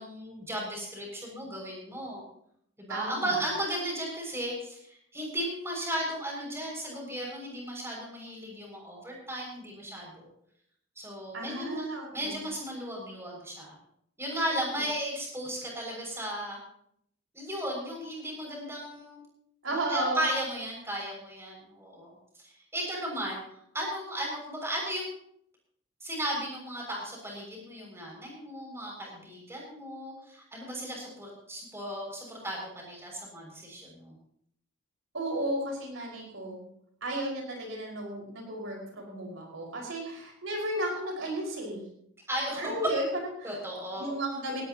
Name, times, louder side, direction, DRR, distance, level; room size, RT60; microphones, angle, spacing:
voice 1, 0.0-2.2 2.8-10.3 11.0-13.7 14.2-16.6 17.3-19.2 19.7-22.1 22.4-23.4 23.7-25.1 26.0-34.1 42.3-42.7 43.4-44.1, right 1 dB, 10° right, -2 dB, 6.8 m, -35 dB
voice 2, 2.9-3.3 11.3-12.4 19.6-20.3 35.1-36.6 37.0-41.9 42.6-43.5 44.0-44.7, right 1 dB, 65° right, 0 dB, 5.7 m, -34 dB
18.5 x 18.5 x 3.1 m, 0.70 s
head